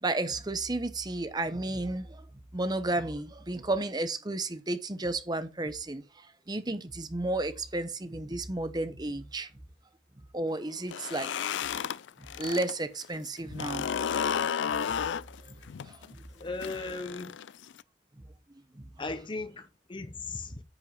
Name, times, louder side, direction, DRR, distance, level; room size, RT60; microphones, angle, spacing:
voice 1, 0.0-2.2 2.5-9.5 10.3-11.3 12.4-13.9 15.4-15.6 15.9-16.2 18.7-18.8, right 2 dB, 20° right, 0.9 m, -32 dB
sound 1, 10.8-12.7 13.0-17.8, left 7 dB, 70° left, 0.4 m, -33 dB
voice 2, 16.4-17.3 19.0-20.6, left 3 dB, 25° left, 0.6 m, -37 dB
9.5 x 5.4 x 5.4 m
head